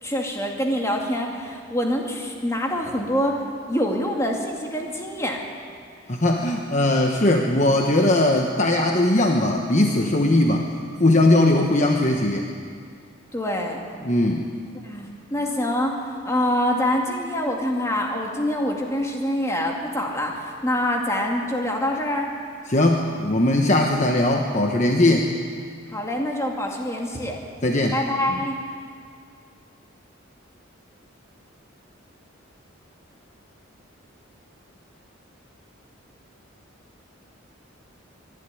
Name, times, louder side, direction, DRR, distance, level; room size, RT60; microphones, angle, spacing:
voice 1, 0.0-3.4 3.7-5.4 13.3-13.8 14.8-22.3 25.9-27.4 27.9-28.6, left 1 dB, 15° left, 0 dB, 2.4 m, -25 dB
voice 2, 6.1-10.7 11.0-12.5 14.0-14.4 22.7-25.3 27.6-28.0, left 1 dB, 35° left, 2 dB, 1.1 m, -19 dB
24.0 x 11.5 x 9.9 m, 2.2 s
head